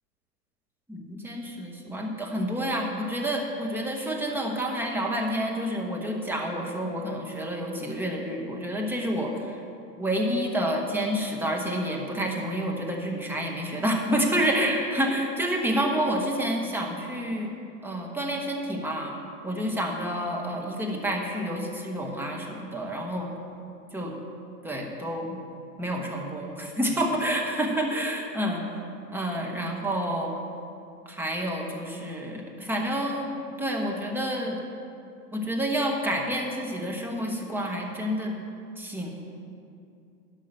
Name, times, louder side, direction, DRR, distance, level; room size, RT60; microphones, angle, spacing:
voice 1, 0.9-9.6 10.0-17.5 17.8-23.3 23.9-24.1 24.6-25.4 25.8-28.6 29.1-30.4 31.1-33.3 33.6-34.6 35.3-38.4 38.8-39.1, equal, 5° right, 0 dB, 1.0 m, -29 dB
11.5 x 5.7 x 6.4 m, 2.5 s
hypercardioid pair, 120°, 49 cm